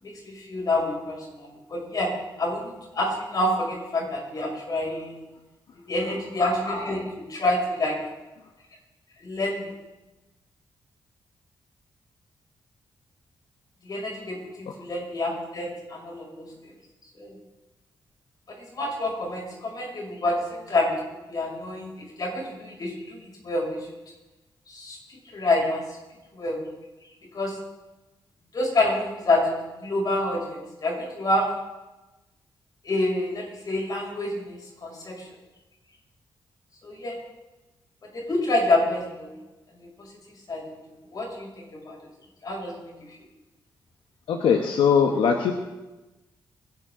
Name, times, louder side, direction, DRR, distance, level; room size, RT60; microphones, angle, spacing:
voice 1, 0.0-2.1 2.4-5.2 5.9-7.0 7.3-8.0 9.2-9.7 13.8-16.7 17.1-17.4 18.5-23.9 24.7-25.8 26.3-26.6 27.3-27.6 28.5-29.5 29.7-31.5 32.8-35.3 36.8-37.2 38.0-39.3 39.7-40.1 40.5-40.6 41.1-42.0 42.4-43.2, left 2 dB, 50° left, -2 dB, 6.4 m, -28 dB
voice 2, 44.3-45.5, left 6 dB, 90° left, 3 dB, 1.2 m, -20 dB
23.0 x 12.0 x 3.9 m, 1.1 s
cardioid pair, 85°, 8 cm